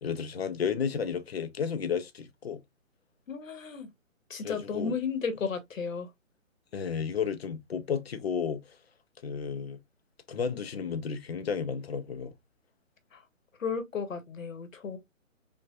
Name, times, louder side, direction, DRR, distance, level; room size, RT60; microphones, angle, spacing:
voice 1, 0.0-2.6 4.4-4.9 6.7-8.8 9.2-9.8 10.3-12.3, left 6 dB, 50° left, 0.6 m, -32 dB
voice 2, 3.3-3.9 4.3-6.1 13.1-13.2 13.6-15.0, left 5 dB, 75° left, 1.2 m, -33 dB
5.4 x 2.4 x 2.3 m
hypercardioid pair, 160°, 40 cm